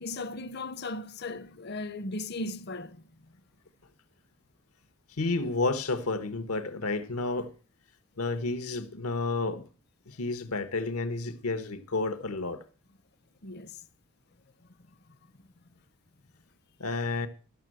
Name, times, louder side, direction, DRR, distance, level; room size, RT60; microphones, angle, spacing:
voice 1, 0.0-3.1 13.4-13.8, left 2 dB, 45° left, 0.6 m, -37 dB
voice 2, 5.2-7.5 8.2-9.6 10.1-12.6 16.8-17.3, left 3 dB, 85° left, 1.2 m, -31 dB
12.5 x 6.2 x 7.6 m
head